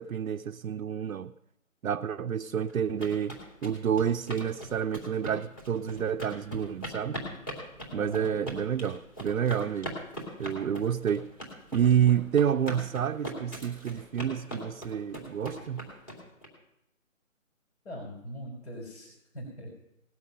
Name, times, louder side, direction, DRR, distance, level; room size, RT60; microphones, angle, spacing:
voice 1, 0.0-1.3 1.8-7.2 7.9-10.0 10.4-11.3 11.7-15.9, right 8 dB, 80° right, 0.7 m, -29 dB
sound 1, 2.7-16.5, equal, 15° left, 2.6 m, -40 dB
voice 2, 7.9-8.3 17.8-19.7, equal, 55° left, 4.7 m, -41 dB
19.0 x 7.6 x 5.6 m
hypercardioid pair, 170°, 41 cm